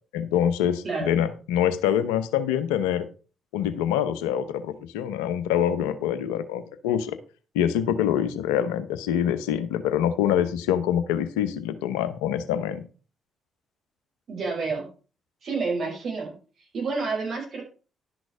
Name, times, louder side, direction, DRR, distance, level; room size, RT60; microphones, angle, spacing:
voice 1, 0.1-3.0 3.5-7.2 7.5-12.8, left 10 dB, 80° left, 12 dB, 0.9 m, -25 dB
voice 2, 14.3-14.9 15.4-16.3 16.7-17.6, right 4 dB, 55° right, 1 dB, 5.1 m, -29 dB
11.5 x 6.2 x 4.9 m, 0.36 s
hypercardioid pair, 45°, 0 cm